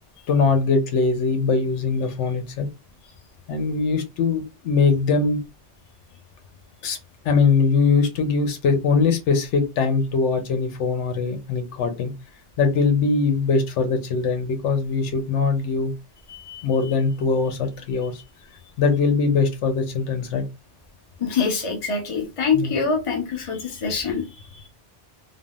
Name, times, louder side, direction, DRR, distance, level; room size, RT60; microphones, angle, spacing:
voice 1, 0.3-2.7 3.5-5.4 6.8-7.0 7.2-12.1 12.6-15.9 16.6-18.2 18.8-20.4 22.5-22.7, left 4 dB, 85° left, 7 dB, 1.0 m, -21 dB
voice 2, 16.3-16.6 21.2-24.2, left 5 dB, 35° left, 1 dB, 0.6 m, -25 dB
3.4 x 2.0 x 2.3 m, 0.25 s
omnidirectional pair, 1.2 m